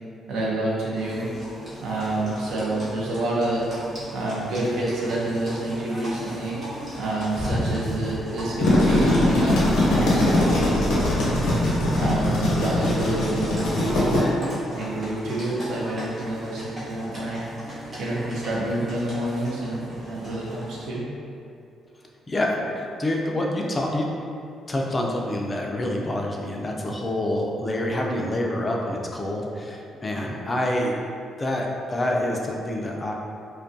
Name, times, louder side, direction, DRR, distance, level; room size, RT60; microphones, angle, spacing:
voice 1, 0.3-1.3 1.8-3.7 4.1-6.6 7.0-11.4 11.9-14.2 14.7-17.4 18.0-21.0, right 1 dB, 80° right, -5 dB, 0.5 m, -28 dB
Livestock farm animals working animals, 0.9-20.9, equal, 50° right, 0.9 m, -38 dB
sound 1, 7.4-10.2 10.5-10.6, equal, 20° right, 0.9 m, -31 dB
sound 2, 8.4-14.2, left 1 dB, 85° left, 0.6 m, -21 dB
voice 2, 22.3-24.1 24.7-30.9 31.4-33.1, left 1 dB, 25° left, -1 dB, 0.3 m, -27 dB
2.3 x 2.1 x 2.5 m, 2.5 s
cardioid pair, 90°, 0 cm